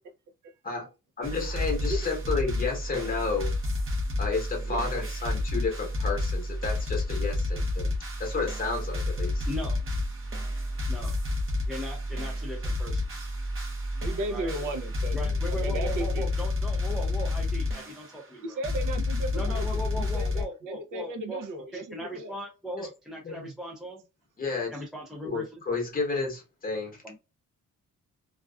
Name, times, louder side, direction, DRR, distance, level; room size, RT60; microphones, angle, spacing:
voice 1, 1.2-3.5 4.2-7.9 8.2-9.4 22.8-22.9 23.2-23.5 24.4-24.7 25.2-27.0, left 4 dB, 30° left, 0.9 m, -31 dB
sound 1, 1.2-20.4, left 2 dB, 40° right, 0.7 m, -30 dB
voice 2, 4.6-5.1 13.9-16.3 18.4-22.3 24.7-24.8, right 1 dB, 80° right, 0.6 m, -36 dB
voice 3, 9.5-9.8 10.9-11.1 11.7-13.3 14.3-14.5 15.1-18.6 19.3-21.4 21.7-24.0 24.7-25.6 27.0-27.2, equal, ahead, 0.4 m, -38 dB
2.4 x 2.3 x 2.2 m
wide cardioid pair, 160°, 31 cm